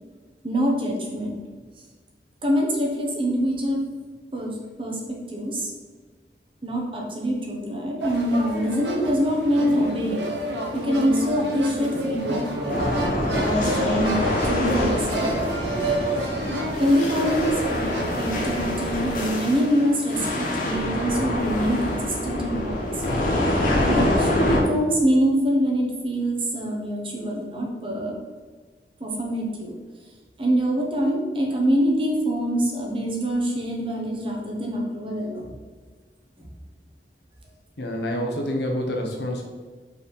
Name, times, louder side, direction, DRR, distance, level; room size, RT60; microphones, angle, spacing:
voice 1, 0.4-1.4 2.4-3.8 4.3-5.7 6.6-10.3 10.7-12.8 13.3-14.2 14.5-15.3 16.8-23.0 23.8-28.1 29.0-29.7 30.4-35.5 36.4-36.5, equal, 30° right, -1 dB, 1.2 m, -25 dB
sound 1, 8.0-18.2, right 1 dB, 85° right, 1.0 m, -29 dB
sound 2, 12.7-24.6, left 1 dB, 50° left, 1.3 m, -26 dB
voice 2, 37.8-39.4, equal, 75° left, 1 dB, 1.2 m, -27 dB
5.3 x 4.4 x 5.5 m, 1.5 s
head